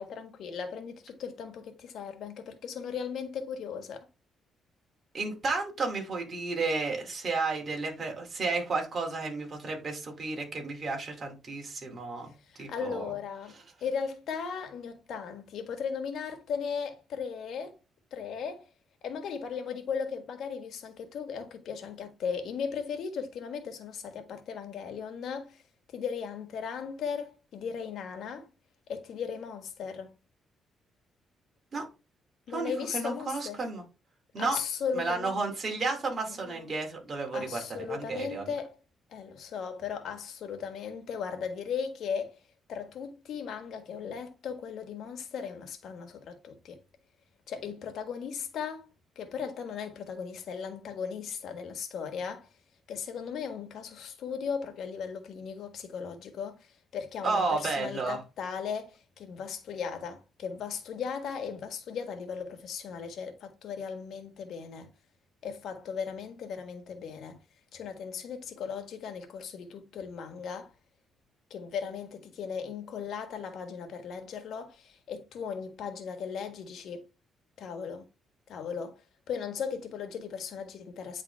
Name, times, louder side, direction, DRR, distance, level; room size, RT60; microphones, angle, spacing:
voice 1, 0.0-4.1 12.5-17.8 18.1-18.7 19.0-25.6 25.9-28.5 28.9-30.1 32.5-33.6 34.4-35.3 36.3-36.7 37.3-38.8 39.1-42.4 42.7-46.8 47.5-48.9 49.1-52.5 52.9-56.7 56.9-64.9 65.4-67.4 67.7-70.7 71.5-77.0 77.6-78.1 78.5-79.0 79.3-81.2, left 6 dB, 70° left, 1.4 m, -37 dB
voice 2, 5.1-12.3 12.6-13.1 31.7-31.8 32.5-33.8 34.3-34.6 34.9-38.5 57.2-58.2, right 3 dB, 40° right, 2.4 m, -32 dB
9.3 x 3.7 x 3.3 m
cardioid pair, 90°, 0 cm